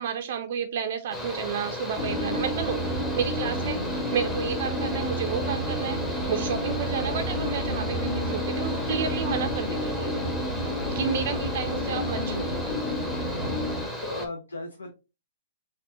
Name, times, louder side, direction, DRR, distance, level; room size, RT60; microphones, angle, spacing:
voice 1, 0.0-2.8 3.2-10.1 10.9-12.6, right 7 dB, 55° right, 6 dB, 0.4 m, -31 dB
Mechanical fan, 1.1-14.3, left 1 dB, 10° left, 1.0 m, -35 dB
sound 1, 2.0-13.9, equal, 30° left, 1.3 m, -30 dB
voice 2, 10.9-11.2 13.4-14.9, left 2 dB, 80° left, 4 dB, 0.6 m, -38 dB
4.3 x 2.4 x 2.7 m, 0.29 s
hypercardioid pair, 120°, 0 cm